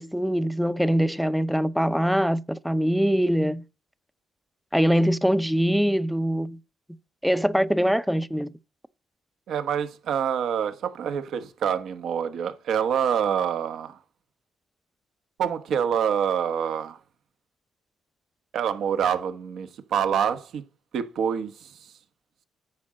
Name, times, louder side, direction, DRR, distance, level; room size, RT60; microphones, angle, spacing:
voice 1, 0.0-3.6 4.7-6.6 7.2-8.5, equal, ahead, 0.6 m, -23 dB
voice 2, 9.5-14.0 15.4-17.0 18.5-20.6 20.9-21.9, right 8 dB, 70° right, 1.2 m, -26 dB
9.6 x 4.9 x 7.5 m
cardioid pair, 90°, 0 cm